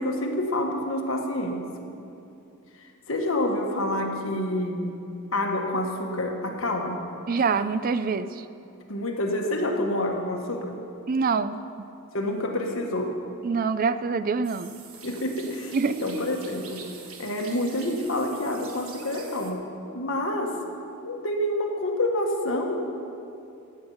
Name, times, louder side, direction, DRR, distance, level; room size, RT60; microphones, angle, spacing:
voice 1, 0.0-1.7 2.7-5.0 5.3-7.0 8.9-10.8 12.1-13.2 15.0-16.9 17.2-20.6 21.0-22.7, left 1 dB, 65° left, 2 dB, 1.5 m, -28 dB
voice 2, 7.3-8.5 11.1-11.6 13.4-14.7 15.7-16.0, right 5 dB, 40° right, 13 dB, 0.4 m, -25 dB
sound 1, 14.4-19.5, right 5 dB, 75° right, 1.4 m, -45 dB
16.5 x 8.8 x 5.7 m, 2.7 s
head